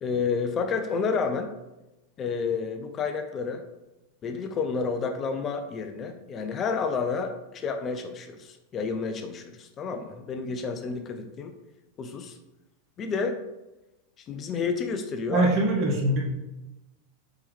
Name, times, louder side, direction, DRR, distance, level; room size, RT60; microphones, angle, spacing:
voice 1, 0.0-1.5 2.2-3.6 4.2-11.5 12.0-12.4 13.0-13.4 14.3-15.5, left 5 dB, 30° left, 6 dB, 0.4 m, -30 dB
voice 2, 15.3-16.2, right 2 dB, 45° right, -2 dB, 1.5 m, -22 dB
4.4 x 3.6 x 3.1 m, 0.98 s
hypercardioid pair, 110°, 0 cm